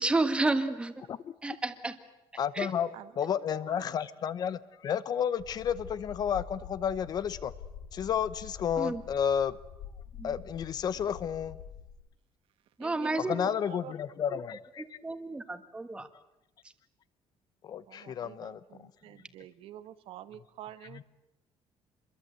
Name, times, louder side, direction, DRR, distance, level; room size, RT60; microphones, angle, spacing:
voice 1, 0.0-0.9 1.4-2.0 2.5-2.7 8.8-9.0 10.2-10.4 12.8-13.4 14.8-16.1, right 2 dB, 10° right, 10 dB, 1.6 m, -31 dB
voice 2, 2.4-2.9 3.2-7.5 7.9-9.6 10.2-11.6 13.3-14.8 17.6-18.9, left 8 dB, 40° left, 16 dB, 0.9 m, -31 dB
voice 3, 2.9-4.3 10.9-11.2 12.8-14.0 17.9-21.0, right 12 dB, 65° right, 13 dB, 1.3 m, -49 dB
laser or machine break, 5.4-11.9, left 8 dB, 80° left, 5.2 m, -46 dB
27.0 x 22.5 x 7.8 m, 0.94 s
cardioid pair, 175°, 10 cm